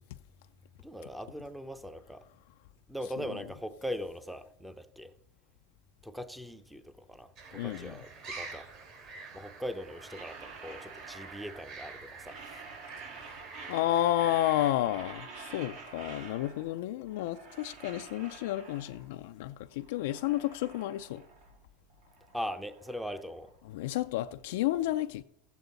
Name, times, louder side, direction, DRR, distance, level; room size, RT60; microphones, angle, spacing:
voice 1, 0.8-2.2 2.9-5.1 6.0-8.7 9.3-12.6 22.3-23.5, equal, ahead, 0.6 m, -40 dB
sound 1, 7.4-14.7, right 4 dB, 55° right, 3.1 m, -47 dB
voice 2, 7.5-8.0 13.2-13.3 13.7-21.2 23.6-25.2, left 13 dB, 80° left, 0.3 m, -31 dB
sound 2, 9.7-11.8 12.1-14.3 14.5-16.8 17.1-19.1 19.6-21.6 21.9-24.1, right 4 dB, 75° right, 3.9 m, -49 dB
14.5 x 8.2 x 3.9 m
supercardioid pair, 125°, 0 cm